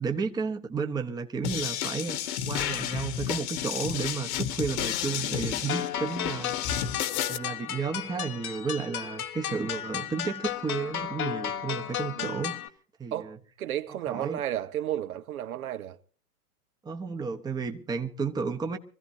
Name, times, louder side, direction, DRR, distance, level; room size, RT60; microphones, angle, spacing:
voice 1, 0.0-2.2 2.5-6.5 7.3-12.6 13.0-13.4 14.1-14.4 16.8-18.8, right 5 dB, 10° right, 1.0 m, -32 dB
sound 1, 1.4-7.4, left 10 dB, 50° left, 1.6 m, -31 dB
sound 2, 5.7-12.7, left 10 dB, 70° left, 1.6 m, -34 dB
voice 2, 12.2-12.5 13.1-16.0, right 11 dB, 70° right, 1.3 m, -33 dB
25.0 x 15.0 x 2.8 m
hypercardioid pair, 125°, 45 cm